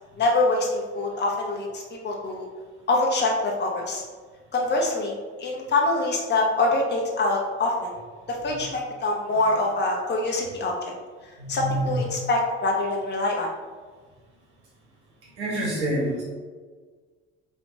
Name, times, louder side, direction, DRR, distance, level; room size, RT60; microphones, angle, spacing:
voice 1, 0.2-2.5 2.9-4.0 4.5-5.1 5.4-7.9 8.3-10.7 11.5-13.5, left 2 dB, 30° left, -1 dB, 1.1 m, -24 dB
voice 2, 11.4-11.9 15.4-16.2, right 1 dB, 85° right, -5 dB, 1.3 m, -27 dB
3.8 x 3.6 x 3.6 m, 1.5 s
figure-of-eight pair, 55°, 34 cm